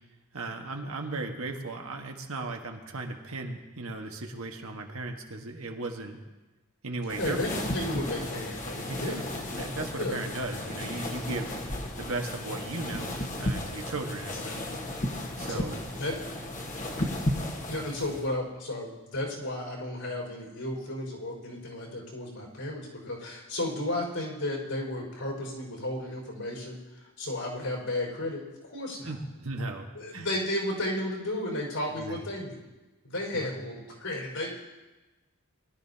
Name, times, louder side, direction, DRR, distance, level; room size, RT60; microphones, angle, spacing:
voice 1, 0.3-6.2 6.8-7.7 8.9-11.5 12.0-14.7 15.4-15.9 29.0-30.2 32.0-32.2 33.3-33.5, right 2 dB, 70° right, 3 dB, 1.4 m, -36 dB
sound 1, 7.1-18.3, left 1 dB, 35° left, 1.4 m, -34 dB
voice 2, 7.2-9.2 10.0-10.2 10.6-10.8 14.4-14.7 15.4-16.2 17.7-29.1 29.9-32.6 33.0-34.5, left 1 dB, 75° left, -1 dB, 5.0 m, -33 dB
21.5 x 12.5 x 2.8 m, 1.2 s
head